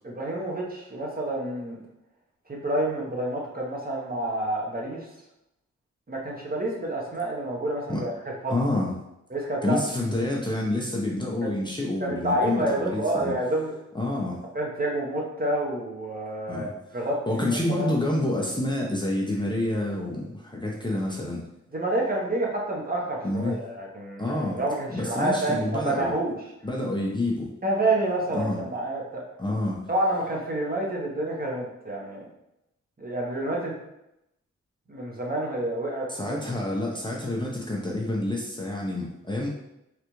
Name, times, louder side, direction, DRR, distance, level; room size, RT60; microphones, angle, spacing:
voice 1, 0.0-1.8 2.5-5.1 6.1-8.1 8.4-8.5 9.3-9.8 11.4-11.5 12.0-13.7 14.5-17.4 17.7-17.9 21.7-26.4 27.6-29.2 29.9-32.3 33.0-33.7 34.9-36.4, right 1 dB, 30° right, -2 dB, 0.9 m, -28 dB
voice 2, 8.5-8.9 9.6-13.3 13.9-14.4 16.5-16.7 17.3-21.4 23.2-23.6 24.2-24.6 24.9-26.1 26.6-27.5 28.3-28.6 29.4-29.8 36.1-39.5, left 1 dB, 15° left, -3 dB, 0.7 m, -28 dB
3.3 x 2.5 x 3.0 m, 0.87 s
cardioid pair, 60°, 30 cm